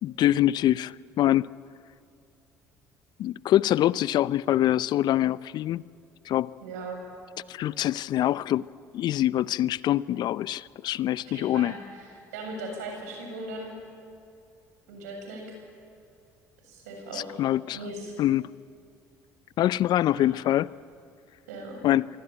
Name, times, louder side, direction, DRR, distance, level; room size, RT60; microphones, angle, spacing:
voice 1, 0.0-1.5 3.2-5.8 6.3-6.5 7.5-8.6 8.9-11.8 17.1-17.8 18.2-18.5 19.6-20.7 21.8-22.1, left 13 dB, 60° left, 20 dB, 0.6 m, -24 dB
voice 2, 6.6-7.0 11.3-12.1 12.3-13.7 14.9-15.6 16.6-17.4 17.7-18.1 20.1-20.3 21.5-21.8, right 2 dB, 80° right, 2 dB, 7.3 m, -38 dB
25.5 x 24.0 x 9.2 m, 2.4 s
hypercardioid pair, 55°, 8 cm